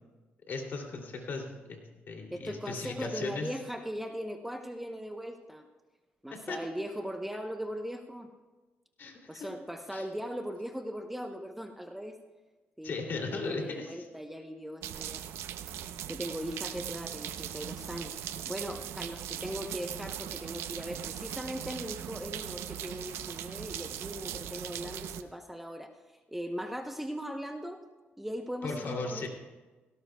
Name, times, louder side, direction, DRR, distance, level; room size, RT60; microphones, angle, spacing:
voice 1, 0.5-3.5 6.5-6.6 9.0-9.5 9.9-10.0 12.8-14.1 28.6-29.3, left 3 dB, 55° left, 1 dB, 2.8 m, -37 dB
voice 2, 2.3-5.7 6.2-8.3 9.3-12.2 12.8-15.2 15.8-25.9 26.3-27.8 28.2-29.3, equal, 5° right, 4 dB, 0.8 m, -39 dB
sound 1, 14.8-25.2, right 10 dB, 85° right, 0.6 m, -39 dB
17.5 x 17.0 x 2.3 m, 1.2 s
cardioid pair, 100°, 4 cm